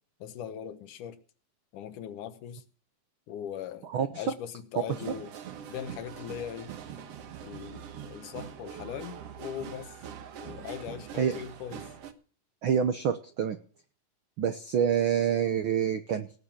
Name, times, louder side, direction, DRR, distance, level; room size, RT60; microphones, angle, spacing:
voice 1, 0.2-1.2 1.7-2.6 3.3-5.3 5.7-6.7 7.4-10.0 10.4-11.9, left 9 dB, 80° left, 2.7 m, -40 dB
voice 2, 3.9-4.2 5.1-5.2 11.2-11.4 12.6-13.6 14.4-16.4, right 8 dB, 85° right, 1.1 m, -27 dB
sound 1, 4.9-12.1, right 8 dB, 60° right, 2.0 m, -43 dB
18.0 x 6.7 x 7.3 m
omnidirectional pair, 3.6 m